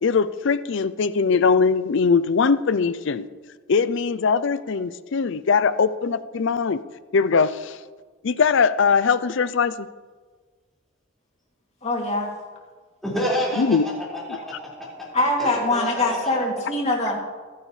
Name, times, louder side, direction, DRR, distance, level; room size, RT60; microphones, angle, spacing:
voice 1, 0.0-3.3 3.7-6.8 7.1-7.8 8.2-9.9 13.6-13.9, left 5 dB, 60° left, 15 dB, 0.5 m, -21 dB
voice 2, 11.8-12.3 15.1-17.2, left 2 dB, 30° left, -1 dB, 2.6 m, -23 dB
voice 3, 13.0-15.1 15.4-16.2, equal, ahead, -7 dB, 4.9 m, -29 dB
26.0 x 10.0 x 3.3 m, 1.5 s
head